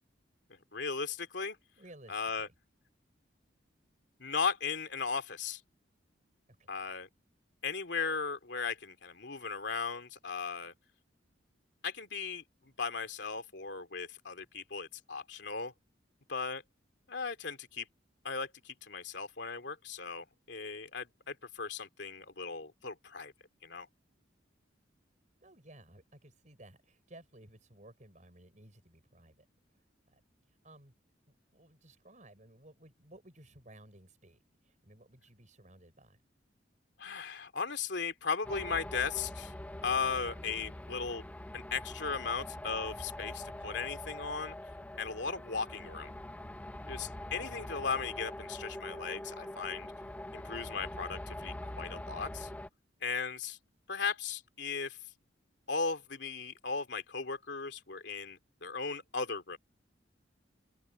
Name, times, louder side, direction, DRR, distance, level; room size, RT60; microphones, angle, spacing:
voice 1, 0.7-1.6 2.1-2.5 4.2-5.6 6.7-7.1 7.6-10.7 11.8-12.4 12.8-15.7 16.3-16.6 17.1-17.9 18.2-23.3 23.6-23.9 37.0-39.5 39.8-41.2 41.5-44.6 45.0-46.1 46.8-49.9 50.3-52.5 53.0-53.6 53.9-55.0 55.7-59.6, left 5 dB, 70° left, 2.8 m, -37 dB
voice 2, 1.8-2.5 6.6-6.7 25.4-29.4 30.1-30.2 30.6-30.9 31.5-36.2, right 1 dB, 40° right, 6.5 m, -57 dB
sound 1, 38.4-52.7, left 1 dB, 10° left, 0.4 m, -44 dB
open air
head